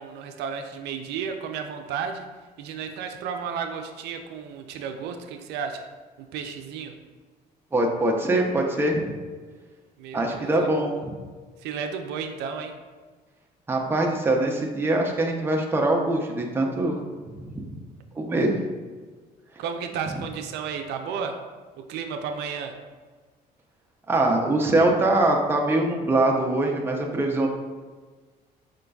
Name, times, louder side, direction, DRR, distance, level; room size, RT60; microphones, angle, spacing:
voice 1, 0.0-2.3 2.6-5.9 6.3-6.9 10.0-10.8 11.6-12.8 19.6-21.4 21.9-22.8, right 6 dB, 85° right, 5 dB, 0.4 m, -33 dB
voice 2, 7.7-9.1 10.1-10.9 13.7-17.0 17.4-17.7 18.1-18.6 24.1-27.5, right 2 dB, 15° right, 0 dB, 0.6 m, -23 dB
5.0 x 3.8 x 2.3 m, 1.4 s
cardioid pair, 110°, 17 cm